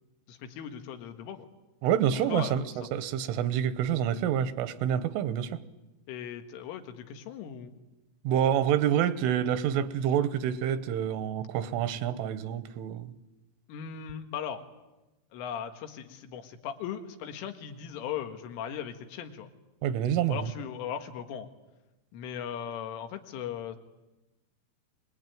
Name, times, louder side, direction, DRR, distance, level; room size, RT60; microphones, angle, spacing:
voice 1, 0.3-1.5 2.3-2.7 6.1-7.7 13.7-14.6 15.3-19.5 20.3-21.5 22.1-23.8, left 8 dB, 90° left, 6 dB, 4.2 m, -38 dB
voice 2, 1.8-2.6 2.9-5.6 8.3-13.1 19.8-20.5, right 9 dB, 85° right, 13 dB, 3.5 m, -27 dB
24.5 x 20.5 x 9.2 m, 1.1 s
omnidirectional pair, 5.5 m